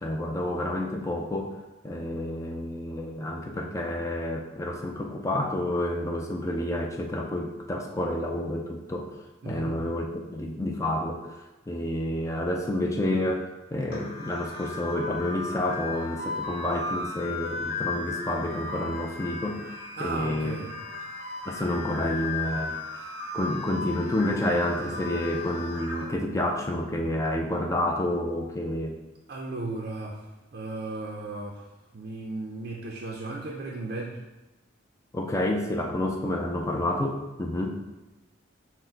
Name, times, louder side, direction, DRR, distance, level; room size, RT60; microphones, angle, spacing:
voice 1, 0.0-1.5 1.8-9.1 9.4-10.1 10.3-11.3 11.7-19.6 20.0-20.6 21.5-22.8 23.3-28.9 35.1-37.7, left 1 dB, 15° left, 1 dB, 0.4 m, -29 dB
voice 2, 9.4-9.8 20.0-20.7 29.3-30.2 30.5-31.6 31.9-34.2, right 2 dB, 55° right, -2 dB, 0.5 m, -35 dB
sound 1, 13.9-26.0, left 3 dB, 55° left, 1.5 m, -36 dB
6.2 x 2.1 x 3.8 m, 1.1 s
head